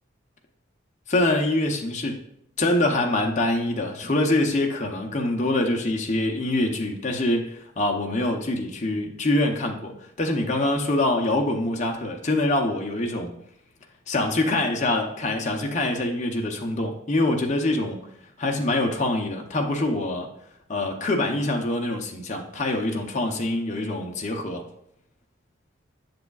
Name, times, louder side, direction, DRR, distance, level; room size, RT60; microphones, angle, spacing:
voice 1, 1.1-2.2 2.6-13.3 14.1-18.0 18.4-20.3 20.7-24.6, left 2 dB, 35° left, 2 dB, 0.7 m, -25 dB
7.7 x 6.9 x 2.4 m, 0.74 s
head